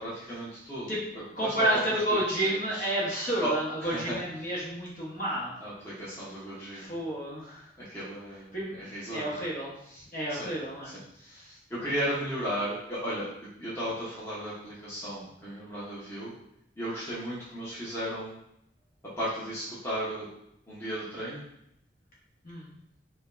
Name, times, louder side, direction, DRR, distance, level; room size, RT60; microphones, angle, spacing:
voice 1, 0.0-1.7 2.1-2.8 3.4-3.5 3.8-4.2 5.6-6.9 7.8-9.3 10.3-10.5 11.7-16.3 16.8-18.4 19.2-20.3 20.7-21.4, equal, 15° left, -10 dB, 0.9 m, -35 dB
voice 2, 1.3-5.5 6.7-7.7 8.5-8.7 9.1-10.9 11.2-11.6 22.4-22.7, right 1 dB, 45° left, -6 dB, 1.2 m, -30 dB
5.0 x 2.2 x 2.6 m, 0.76 s
head